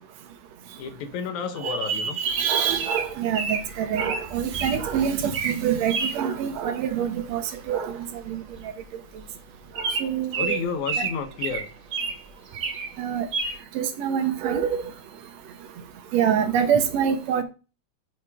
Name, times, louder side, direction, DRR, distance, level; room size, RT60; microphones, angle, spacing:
voice 1, 0.8-2.2 10.4-11.7, left 6 dB, 85° left, 2.5 m, -31 dB
voice 2, 1.6-8.0 8.3-8.4 9.8-10.6 11.0-11.1 13.0-13.3 13.8-14.8 16.1-17.4, right 8 dB, 70° right, 2.0 m, -25 dB
Bird vocalization bird call bird song, 2.3-4.8 5.2-5.6 5.9-6.2 7.7-7.9 8.2-8.3 8.5-8.7 9.2-9.3 9.8-12.2 12.5-12.9 13.3-13.6, right 4 dB, 50° right, 2.0 m, -29 dB
6.5 x 4.5 x 4.8 m
omnidirectional pair, 3.3 m